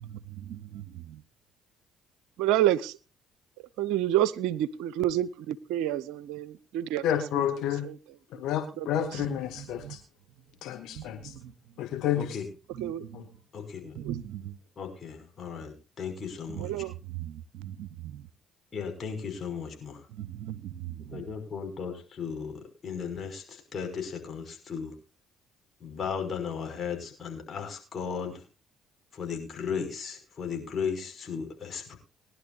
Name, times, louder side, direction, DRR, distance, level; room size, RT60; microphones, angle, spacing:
voice 1, 0.0-1.2 2.4-2.9 3.8-7.0 8.9-9.1 9.8-9.9 11.0-11.5 12.8-13.2 14.0-14.5 16.5-18.1 20.2-21.2, right 12 dB, 75° right, 19 dB, 0.6 m, -30 dB
voice 2, 7.0-7.9 8.3-10.0 10.6-11.3 11.8-12.4 13.1-13.3, left 10 dB, 70° left, 7 dB, 1.4 m, -30 dB
voice 3, 13.5-14.0 14.8-16.7 18.7-20.1 21.1-24.9 25.8-28.4 29.1-32.0, left 6 dB, 45° left, 3 dB, 5.5 m, -36 dB
21.5 x 11.0 x 2.5 m, 0.31 s
hypercardioid pair, 50°, 0 cm